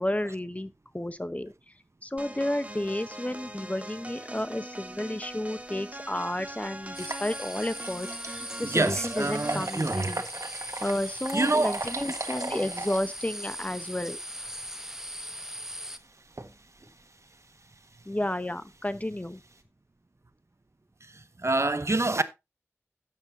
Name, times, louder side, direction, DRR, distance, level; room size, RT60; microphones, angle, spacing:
voice 1, 0.0-1.5 2.0-10.2 10.8-14.2 18.1-19.4, left 1 dB, 30° left, 1.0 m, -32 dB
sound 1, 2.2-9.8, right 1 dB, 25° right, 1.4 m, -42 dB
sound 2, 5.6-5.7 6.1-6.2 6.8-19.6, right 2 dB, 85° right, 1.5 m, -41 dB
sound 3, 6.9-16.0, equal, 10° right, 1.0 m, -39 dB
voice 2, 8.6-10.1 11.3-11.8 21.4-22.2, right 2 dB, 65° right, 1.0 m, -26 dB
13.0 x 8.8 x 2.8 m
wide cardioid pair, 45°, 5 cm